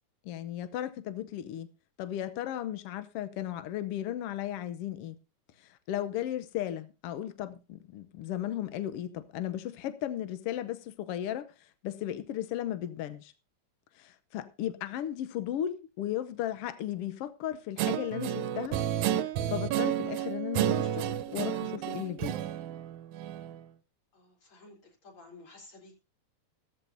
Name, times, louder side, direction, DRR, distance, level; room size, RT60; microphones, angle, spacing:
voice 1, 0.2-1.7 2.0-5.2 5.6-13.3 13.9-18.8 19.2-21.1 21.3-22.4, left 11 dB, 80° left, 1.3 m, -35 dB
Guitar, 17.8-23.6, right 10 dB, 75° right, 2.0 m, -31 dB
voice 2, 24.1-26.0, left 3 dB, 45° left, 4.3 m, -53 dB
15.5 x 14.0 x 2.7 m
omnidirectional pair, 3.6 m